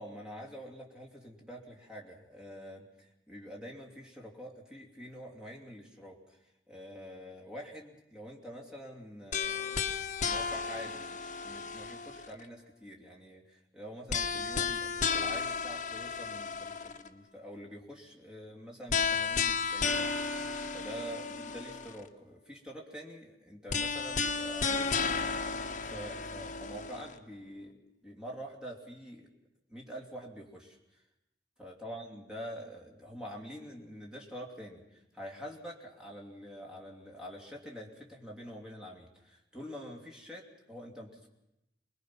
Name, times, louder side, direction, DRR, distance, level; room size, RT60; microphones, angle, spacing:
voice 1, 0.0-9.9 10.2-25.2 25.6-29.3 29.7-31.0 31.6-41.3, equal, 5° right, -1 dB, 2.8 m, -46 dB
sound 1, 9.3-12.5 14.1-17.1 18.9-22.1 23.7-27.1, left 5 dB, 45° left, 1.2 m, -33 dB
24.5 x 20.5 x 6.0 m, 0.89 s
head